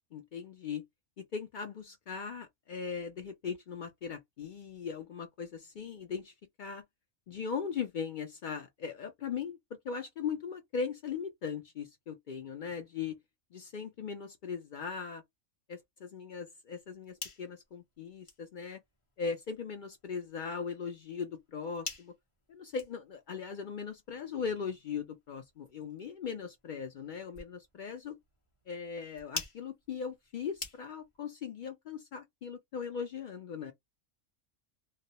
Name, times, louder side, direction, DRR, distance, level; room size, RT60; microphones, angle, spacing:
voice 1, 0.1-0.8 1.2-6.3 6.6-6.8 7.3-9.6 9.8-13.2 13.5-15.2 15.7-18.8 19.2-22.1 22.5-28.2 28.7-33.7, left 6 dB, 70° left, 0.4 m, -39 dB
sound 1, 16.8-31.2, left 3 dB, 30° left, 0.8 m, -49 dB
2.4 x 2.1 x 2.7 m
omnidirectional pair, 1.3 m